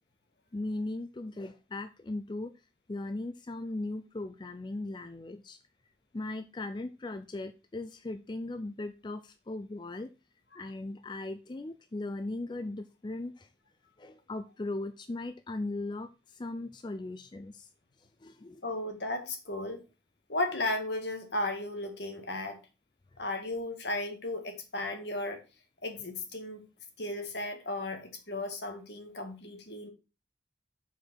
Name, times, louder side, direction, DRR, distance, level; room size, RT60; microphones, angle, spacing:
voice 1, 0.5-2.5 2.9-5.6 6.1-10.1 10.5-13.5 14.0-17.7 18.0-18.6, left 2 dB, 25° left, 10 dB, 0.4 m, -38 dB
voice 2, 18.6-19.8 20.3-22.6 23.2-25.4 25.8-26.7 27.0-29.9, left 2 dB, 65° left, 5 dB, 1.8 m, -35 dB
6.7 x 4.8 x 6.1 m, 0.30 s
head